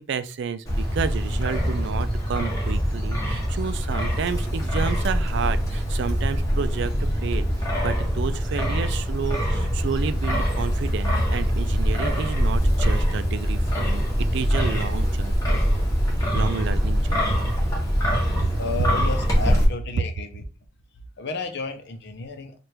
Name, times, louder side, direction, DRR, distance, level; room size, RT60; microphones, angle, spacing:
voice 1, 0.0-6.9 7.2-7.5 7.8-15.6 16.3-17.5, right 6 dB, 65° right, 0.4 m, -31 dB
Wind, 0.7-19.6, equal, 20° left, 1.5 m, -23 dB
voice 2, 18.6-20.4 21.2-22.6, left 3 dB, 60° left, 0.7 m, -32 dB
3.3 x 2.4 x 4.4 m
head